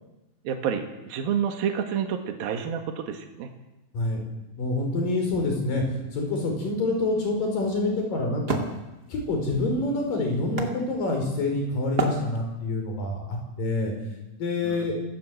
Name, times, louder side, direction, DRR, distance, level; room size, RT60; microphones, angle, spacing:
voice 1, 0.5-3.5 14.7-14.8, right 8 dB, 70° right, 5 dB, 3.6 m, -29 dB
voice 2, 4.6-8.6 9.1-13.9 14.4-15.0, left 2 dB, 60° left, 2 dB, 6.8 m, -27 dB
Wood, 6.7-11.4 11.9-12.8, right 4 dB, 30° right, 2.4 m, -33 dB
26.0 x 17.0 x 8.0 m, 1.0 s
omnidirectional pair, 4.4 m